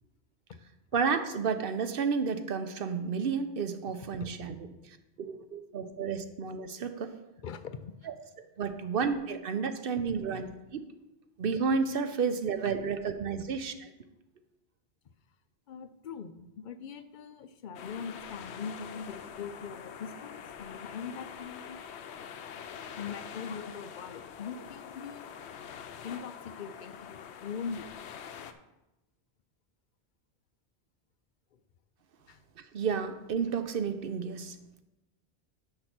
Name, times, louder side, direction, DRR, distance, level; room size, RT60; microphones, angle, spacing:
voice 1, 0.9-4.6 4.8-7.1 8.1-10.9 11.4-13.9 32.6-34.6, right 5 dB, 60° right, 9 dB, 0.8 m, -31 dB
voice 2, 7.4-7.9 15.7-21.8 22.9-25.2 26.0-27.9 32.3-32.4, left 6 dB, 55° left, 10 dB, 0.6 m, -41 dB
sound 1, 17.7-28.5, left 8 dB, 80° left, 0.9 m, -45 dB
6.6 x 6.1 x 5.9 m, 0.96 s
omnidirectional pair, 1.1 m